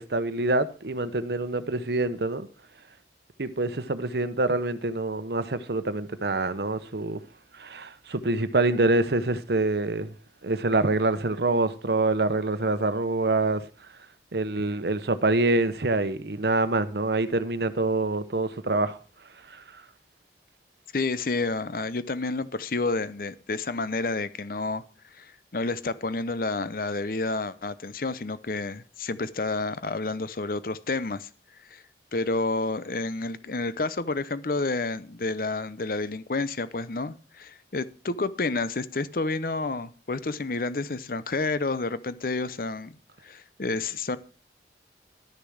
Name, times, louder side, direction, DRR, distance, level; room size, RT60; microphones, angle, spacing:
voice 1, 0.0-2.5 3.4-7.2 7.6-10.1 10.4-13.6 14.3-19.0 19.5-19.6, right 2 dB, 65° right, 0.9 m, -26 dB
voice 2, 20.9-24.8 25.1-31.3 31.7-31.8 32.1-43.0 43.2-44.2, left 3 dB, 50° left, 0.7 m, -30 dB
12.0 x 6.7 x 6.4 m
head